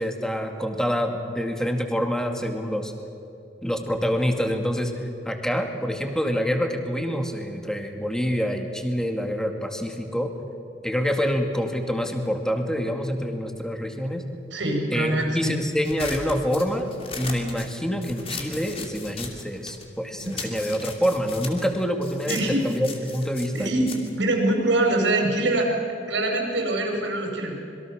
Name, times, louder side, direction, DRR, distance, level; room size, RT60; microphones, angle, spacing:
voice 1, 0.0-2.9 3.6-4.9 5.2-10.3 10.8-14.2 14.9-16.9 17.2-23.7, equal, 5° left, 4 dB, 2.2 m, -26 dB
voice 2, 14.5-15.5 20.2-20.3 22.3-22.6 23.5-25.7 26.1-27.5, right 2 dB, 80° right, 1 dB, 5.3 m, -24 dB
sound 1, 15.8-19.9 20.2-25.0, left 4 dB, 30° left, 2.7 m, -38 dB
26.5 x 22.5 x 6.5 m, 2.7 s
head